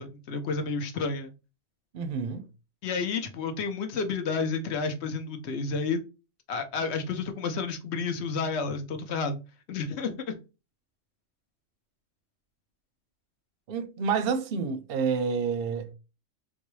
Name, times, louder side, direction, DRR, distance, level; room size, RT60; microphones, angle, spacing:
voice 1, 0.0-1.3 2.8-6.0 6.5-9.4 9.7-10.4, left 4 dB, 65° left, 0.9 m, -31 dB
voice 2, 1.9-2.5 13.7-15.9, right 5 dB, 60° right, 0.7 m, -29 dB
3.9 x 2.2 x 3.1 m
omnidirectional pair, 1.3 m